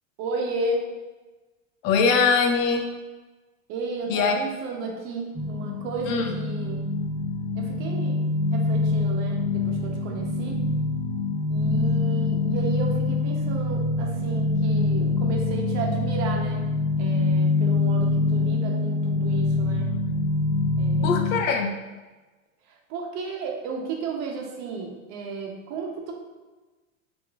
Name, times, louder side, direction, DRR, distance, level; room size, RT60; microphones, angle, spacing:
voice 1, 0.2-0.9 3.7-6.9 7.5-10.6 11.5-16.7 17.0-20.0 20.8-21.4 22.7-26.1, right 3 dB, 40° right, 0 dB, 0.6 m, -33 dB
voice 2, 1.8-2.9 4.1-4.4 6.1-6.3 21.0-21.7, left 5 dB, 65° left, 4 dB, 0.6 m, -22 dB
sound 1, 5.3-21.4, left 3 dB, 30° left, 1.3 m, -25 dB
3.7 x 2.5 x 2.2 m, 1.2 s
supercardioid pair, 130°, 43 cm